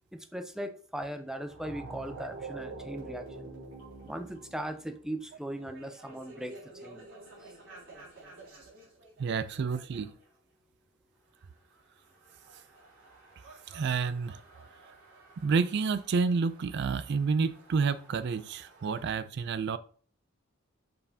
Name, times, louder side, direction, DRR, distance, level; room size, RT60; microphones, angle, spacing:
voice 1, 0.1-3.5 4.0-6.6 6.8-7.1, right 1 dB, 5° right, 0.5 m, -39 dB
sound 1, 1.4-10.3 11.7-19.1, right 3 dB, 75° right, 3.4 m, -49 dB
voice 2, 9.2-10.1 13.7-14.4 15.4-19.8, right 5 dB, 55° right, 0.3 m, -29 dB
6.9 x 5.4 x 2.7 m
head